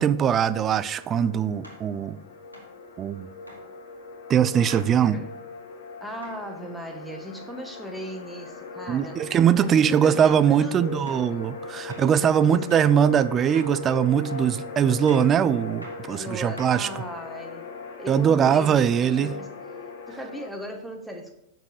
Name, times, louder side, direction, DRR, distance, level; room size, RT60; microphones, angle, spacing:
voice 1, 0.0-2.2 3.0-3.3 4.3-5.2 8.9-16.9 18.1-19.3, right 8 dB, 25° right, 15 dB, 0.4 m, -21 dB
sound 1, 0.5-20.5, left 3 dB, 60° left, 1.2 m, -39 dB
sound 2, 0.6-0.7 1.6-1.9 2.5-2.8 3.5-3.7 4.7-4.9 6.2-6.4 9.5-9.6 10.2-10.5 11.1-11.3 11.9-12.2 12.7-13.0 13.5-13.8 14.3-14.5 15.1-15.3 15.8-16.1 16.6-17.1, equal, 90° left, 1.9 m, -45 dB
voice 2, 4.9-5.3 6.0-9.2 9.6-11.0 11.3-11.4 11.8-11.9 12.4-12.8 16.0-17.7 18.0-19.5 20.1-21.3, equal, ahead, 2 dB, 1.3 m, -37 dB
7.4 x 6.2 x 4.8 m, 0.82 s
figure-of-eight pair, 90°, 0 cm